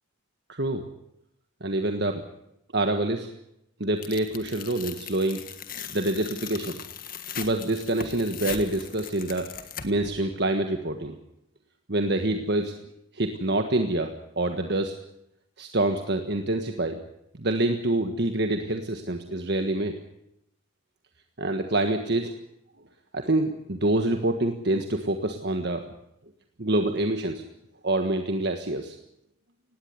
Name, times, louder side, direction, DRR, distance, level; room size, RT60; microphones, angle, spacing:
voice 1, 0.5-0.8 1.6-2.2 2.7-3.3 3.8-5.4 5.9-6.8 7.4-9.5 9.8-11.1 11.9-12.7 13.1-14.9 15.6-17.0 17.4-19.9 21.4-22.3 23.1-25.8 26.6-27.4 27.8-28.9, right 1 dB, 55° right, 6 dB, 1.5 m, -26 dB
Tearing, 4.0-10.1, left 8 dB, 45° left, 1.7 m, -39 dB
19.5 x 17.0 x 9.6 m, 0.81 s
head